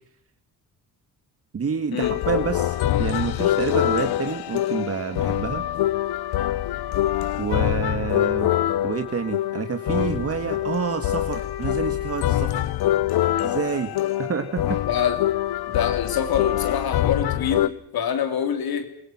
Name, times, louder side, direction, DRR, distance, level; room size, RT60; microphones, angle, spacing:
voice 1, 1.5-5.6 7.4-8.5 8.8-12.7 13.4-13.9 14.2-14.8, right 6 dB, 40° right, 7 dB, 1.9 m, -28 dB
sound 1, 2.0-17.7, left 13 dB, 85° left, 1.0 m, -24 dB
voice 2, 14.9-15.2 15.7-18.9, left 8 dB, 70° left, 8 dB, 3.3 m, -25 dB
30.0 x 23.5 x 6.1 m, 0.69 s
cardioid pair, 135°, 38 cm